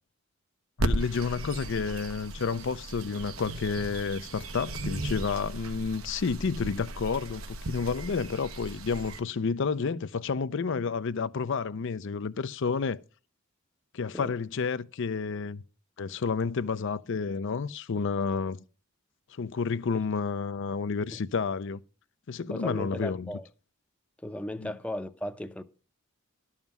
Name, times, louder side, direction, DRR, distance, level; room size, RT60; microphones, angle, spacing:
voice 1, 0.8-13.0 13.9-15.6 16.0-18.6 19.3-21.8 22.3-23.3 24.6-24.7, left 5 dB, 60° left, 0.5 m, -30 dB
sound 1, 0.8-9.2, right 1 dB, 80° right, 1.1 m, -36 dB
voice 2, 22.5-23.4 24.2-25.6, left 1 dB, 5° left, 0.6 m, -36 dB
12.0 x 7.3 x 6.0 m
head